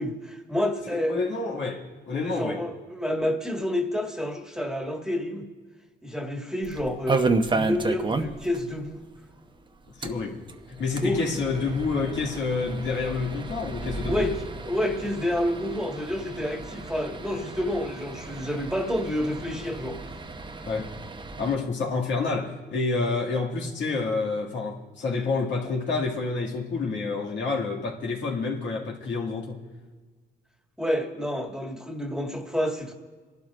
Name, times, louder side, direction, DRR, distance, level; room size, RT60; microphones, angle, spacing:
voice 1, 0.0-1.2 2.2-5.5 6.0-9.0 11.0-11.4 14.1-20.0 30.8-32.9, left 1 dB, 5° right, 1.7 m, -29 dB
voice 2, 0.9-2.6 10.0-10.4 10.7-14.3 20.7-20.9 21.4-29.6, left 4 dB, 70° left, 2.2 m, -28 dB
sound 1, 6.6-8.6 8.9-9.0 9.2-9.3 9.9-21.6, right 3 dB, 25° right, 0.8 m, -32 dB
28.5 x 12.0 x 2.5 m
cardioid pair, 90°, 20 cm